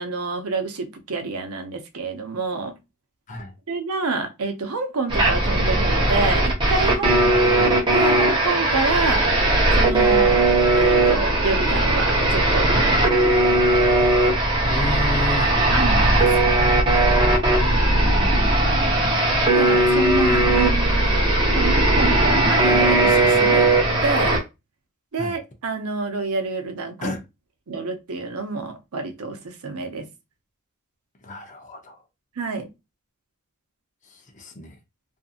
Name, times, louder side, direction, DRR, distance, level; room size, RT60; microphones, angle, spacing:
voice 1, 0.0-2.7 3.7-7.7 7.9-9.2 9.8-10.5 10.7-12.9 13.4-13.6 15.7-16.6 19.5-23.7 24.0-24.4 25.1-27.1 27.7-30.1 32.4-32.7, right 3 dB, 80° right, 0.6 m, -28 dB
sound 1, 5.1-24.4, right 1 dB, 20° right, 0.8 m, -18 dB
voice 2, 7.0-7.8 12.7-12.9 14.6-15.6 17.6-19.0 25.2-25.4 27.0-27.2 31.2-32.0 34.1-34.8, left 1 dB, 35° left, 0.6 m, -32 dB
2.6 x 2.5 x 2.4 m
head